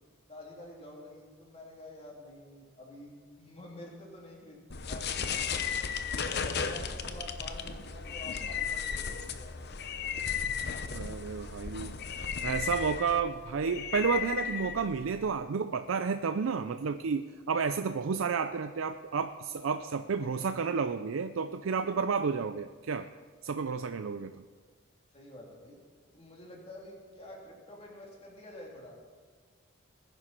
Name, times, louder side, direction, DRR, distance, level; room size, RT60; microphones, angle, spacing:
voice 1, 0.3-5.7 6.1-9.6 12.1-12.5 21.6-21.8 23.5-23.7 25.1-25.8 26.1-29.0, left 1 dB, 30° left, -3 dB, 3.3 m, -48 dB
sound 1, 4.7-15.3, left 6 dB, 55° left, 0.8 m, -35 dB
voice 2, 10.9-12.0 12.4-23.1 23.4-24.4, right 5 dB, 75° right, 9 dB, 0.5 m, -31 dB
20.5 x 10.0 x 4.5 m, 1.5 s
head